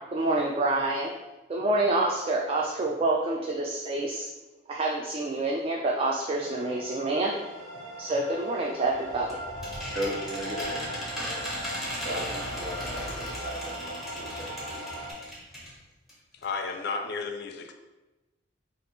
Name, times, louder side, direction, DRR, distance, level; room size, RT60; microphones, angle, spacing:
voice 1, 0.1-1.1 1.5-4.3 4.7-7.3 8.0-9.4, right 2 dB, 30° right, -2 dB, 0.3 m, -27 dB
sound 1, 6.4-15.1, equal, 85° right, 0.6 m, -39 dB
sound 2, 8.9-15.8 16.1-16.2 16.4-16.5, equal, ahead, 0.9 m, -37 dB
voice 2, 9.9-11.4 12.0-14.8, right 1 dB, 60° right, -5 dB, 1.3 m, -37 dB
voice 3, 16.4-17.7, left 4 dB, 60° left, 6 dB, 0.4 m, -33 dB
3.5 x 2.4 x 3.8 m, 1.1 s
head